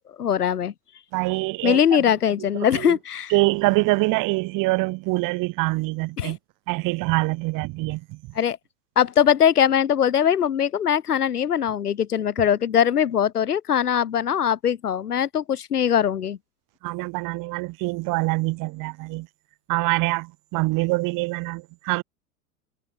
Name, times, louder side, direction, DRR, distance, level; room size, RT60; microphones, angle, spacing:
voice 1, 0.2-0.7 1.6-3.3 6.2-6.3 8.3-8.6 9.0-16.4, left 9 dB, 80° left, 1.3 m, -21 dB
voice 2, 1.1-1.8 2.7-3.0 3.3-6.4 6.7-8.2 16.8-19.3 19.7-22.0, right 24 dB, 45° right, 2.9 m, -24 dB
figure-of-eight pair, 85°, 45 cm